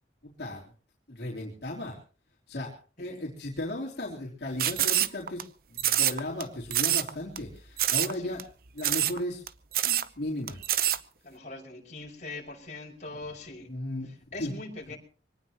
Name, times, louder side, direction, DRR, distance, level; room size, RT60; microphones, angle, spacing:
voice 1, 0.2-0.6 1.1-2.0 2.5-2.7 3.0-5.4 5.7-8.4 8.7-9.4 9.8-10.6 13.7-14.1 14.4-14.5, left 1 dB, 65° left, -3 dB, 3.6 m, -35 dB
sound 1, 4.6-5.4 5.8-6.4 6.7-7.1 7.4-7.5 7.8-8.1 8.4-8.5 8.8-9.2 9.5-9.6 9.7-10.1 10.5-11.0, right 12 dB, 55° right, 0.8 m, -25 dB
voice 2, 11.2-13.7 14.1-15.0, left 2 dB, 40° left, -1 dB, 5.9 m, -42 dB
24.5 x 18.5 x 3.0 m, 0.39 s
head